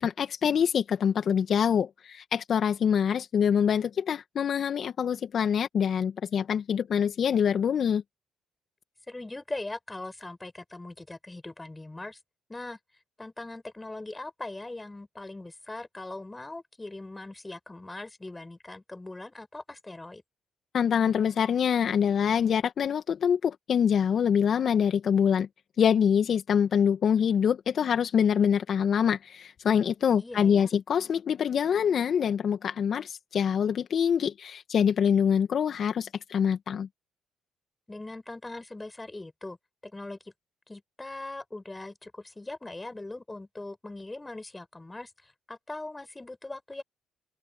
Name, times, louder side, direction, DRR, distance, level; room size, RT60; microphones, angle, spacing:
voice 1, 0.0-8.0 20.7-25.5 25.8-36.9, left 8 dB, 55° left, 1.7 m, -25 dB
voice 2, 9.1-12.2 12.5-12.8 13.2-20.2 30.1-30.7 37.9-39.6 39.8-40.2 40.7-46.8, left 2 dB, 20° left, 5.9 m, -40 dB
hypercardioid pair, 55°, 0 cm